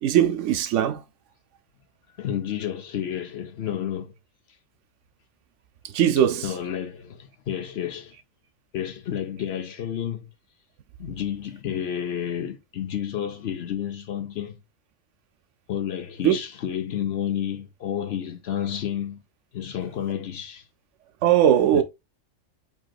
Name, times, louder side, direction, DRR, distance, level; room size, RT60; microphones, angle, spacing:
voice 1, 0.0-1.0 5.8-6.5 16.2-16.4 21.2-21.8, right 10 dB, 75° right, 0.9 m, -20 dB
voice 2, 2.2-4.1 6.4-8.1 8.7-10.3 11.0-14.6 15.7-19.2 19.5-20.6 21.7-21.8, left 9 dB, 60° left, 0.9 m, -30 dB
7.5 x 2.9 x 2.3 m
omnidirectional pair, 1.3 m